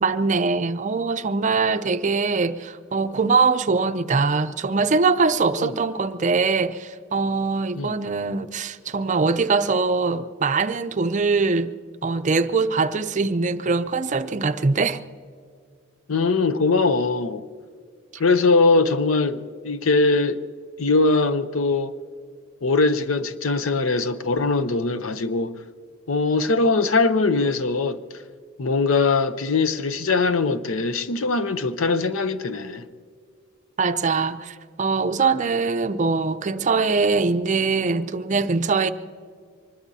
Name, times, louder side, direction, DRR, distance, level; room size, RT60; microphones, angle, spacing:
voice 1, 0.0-11.7 12.0-15.0 33.8-38.9, right 4 dB, 35° right, 0.5 m, -22 dB
voice 2, 16.1-17.4 18.2-20.4 20.8-21.9 22.6-25.5 26.1-28.0 28.6-32.8, left 3 dB, 75° left, 0.7 m, -21 dB
24.5 x 20.5 x 2.8 m
head